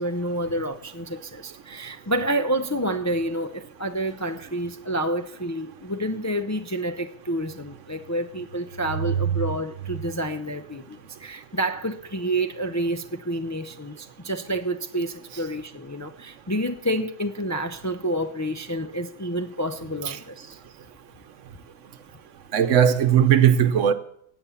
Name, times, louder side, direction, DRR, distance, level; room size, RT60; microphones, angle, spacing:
voice 1, 0.0-20.6, right 1 dB, 20° left, 0.4 m, -29 dB
voice 2, 22.5-23.9, right 9 dB, 75° right, 1.2 m, -18 dB
17.0 x 7.9 x 7.1 m
omnidirectional pair, 1.3 m